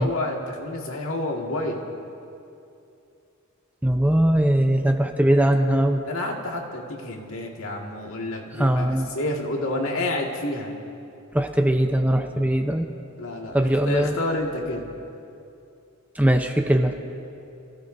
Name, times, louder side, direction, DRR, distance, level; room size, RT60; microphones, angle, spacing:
voice 1, 0.0-1.8 6.1-8.9 9.1-10.7 13.2-14.9, left 2 dB, 75° left, 0 dB, 2.0 m, -29 dB
voice 2, 3.8-6.0 8.6-9.1 11.3-12.9 13.5-14.2 16.2-16.9, right 1 dB, 5° right, 4 dB, 0.7 m, -20 dB
28.0 x 16.0 x 2.7 m, 2.6 s
head